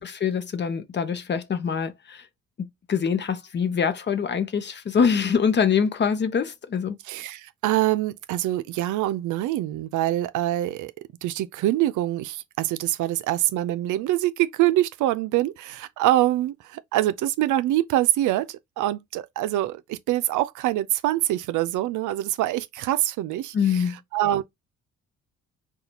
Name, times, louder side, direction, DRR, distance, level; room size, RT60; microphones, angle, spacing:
voice 1, 0.0-2.3 2.6-7.0 23.5-24.0, left 6 dB, 35° left, 0.7 m, -24 dB
voice 2, 7.1-10.9 11.2-24.4, right 14 dB, 80° right, 0.5 m, -25 dB
4.0 x 2.4 x 2.8 m
cardioid pair, 90°, 30 cm